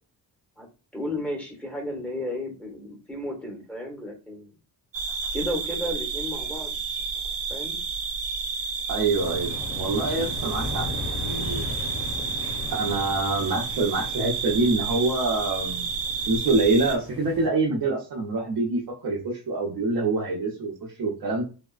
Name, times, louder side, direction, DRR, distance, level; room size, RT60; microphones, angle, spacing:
voice 1, 0.9-4.5 5.3-6.8 7.5-7.8, left 1 dB, 5° left, 1 dB, 1.1 m, -33 dB
sound 1, 4.9-17.0, right 5 dB, 40° right, 0.5 m, -31 dB
voice 2, 8.9-11.6 12.7-15.9 16.3-21.4, right 3 dB, 65° right, -4 dB, 0.8 m, -26 dB
sound 2, 9.1-17.5, left 2 dB, 85° left, 0.8 m, -37 dB
3.5 x 2.1 x 2.4 m, 0.33 s
cardioid pair, 130°, 38 cm